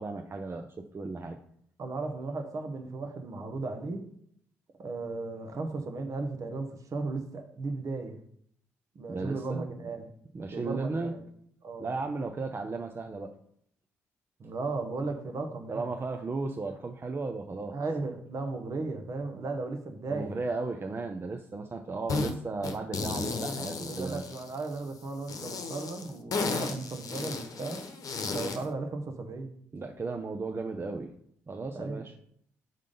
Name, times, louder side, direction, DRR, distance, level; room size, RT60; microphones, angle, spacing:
voice 1, 0.0-1.4 9.1-9.9 10.3-11.1 11.8-13.3 15.7-17.8 20.1-24.2 29.7-31.1 31.5-32.1, right 3 dB, 35° right, 0.6 m, -35 dB
voice 2, 1.8-4.1 4.8-8.2 8.9-10.1 10.5-11.2 11.6-11.9 14.4-15.9 17.7-20.4 23.9-27.8 28.3-29.5 31.7-32.0, right 3 dB, 50° right, 1.0 m, -36 dB
sound 1, 22.1-22.3 22.6-24.8 25.3-28.7, left 4 dB, 55° left, 0.9 m, -34 dB
5.6 x 3.7 x 5.2 m
hypercardioid pair, 45°, 7 cm